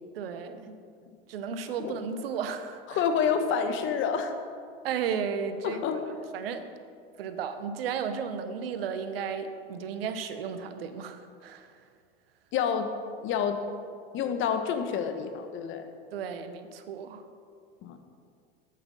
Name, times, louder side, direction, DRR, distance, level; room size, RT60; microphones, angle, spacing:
voice 1, 0.1-0.8 1.3-3.0 4.8-5.8 6.3-6.7 7.2-11.7 16.1-17.2, right 6 dB, 75° right, 9 dB, 0.9 m, -34 dB
voice 2, 2.9-4.3 5.6-6.0 12.5-12.9 13.2-13.6 14.1-15.9 17.8-18.0, left 7 dB, 45° left, 7 dB, 1.2 m, -28 dB
8.5 x 8.4 x 5.3 m, 2.2 s
hypercardioid pair, 95°, 29 cm